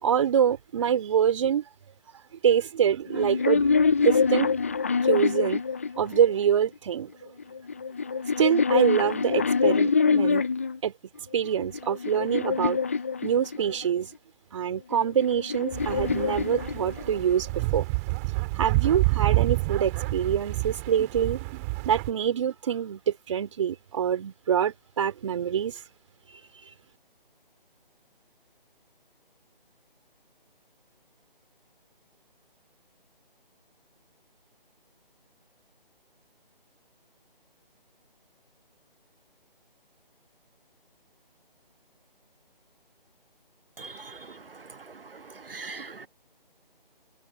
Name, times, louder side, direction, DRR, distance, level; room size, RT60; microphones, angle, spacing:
voice 1, 0.0-1.6 2.4-3.7 4.0-4.5 5.0-5.6 6.0-7.1 8.4-10.4 10.8-10.9 11.3-12.8 13.2-14.1 14.5-17.9 18.6-21.4 21.8-25.7, right 8 dB, 35° right, 3.6 m, -25 dB
sound 1, 3.1-6.5 7.4-10.8 11.4-13.9 14.9-17.3, left 5 dB, 15° left, 0.6 m, -25 dB
sound 2, 15.7-22.1, right 26 dB, 15° right, 2.5 m, -28 dB
voice 2, 43.8-44.2 45.5-46.1, right 4 dB, 70° right, 1.5 m, -40 dB
figure-of-eight pair, 160°, 29 cm